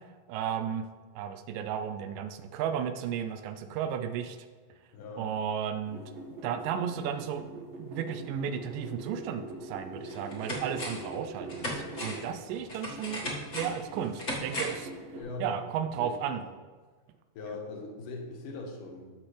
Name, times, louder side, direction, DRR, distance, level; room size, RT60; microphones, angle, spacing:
voice 1, 0.3-0.9 1.2-4.4 5.2-6.0 6.4-7.4 7.8-13.2 13.5-14.9 15.4-16.4, right 8 dB, 85° right, 7 dB, 2.3 m, -34 dB
voice 2, 4.9-5.3 15.2-15.6 15.9-16.4 17.3-19.1, left 3 dB, 75° left, 1 dB, 2.8 m, -40 dB
sound 1, 5.8-12.3 12.7-15.2, right 2 dB, 55° right, 2.0 m, -43 dB
sound 2, 9.5-9.6 10.0-11.1 11.5-14.9 15.2-15.3, equal, 35° left, 1.4 m, -37 dB
14.0 x 6.1 x 3.3 m, 1.4 s
omnidirectional pair, 3.8 m